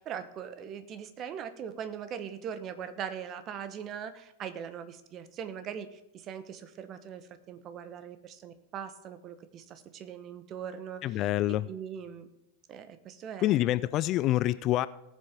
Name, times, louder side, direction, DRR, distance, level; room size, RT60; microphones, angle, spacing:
voice 1, 0.1-12.3 12.7-13.8, right 8 dB, 30° right, 11 dB, 1.1 m, -41 dB
voice 2, 11.0-11.7 13.4-14.9, left 14 dB, 35° left, 17 dB, 0.3 m, -26 dB
18.5 x 7.4 x 3.6 m, 0.93 s
figure-of-eight pair, 90°, 0 cm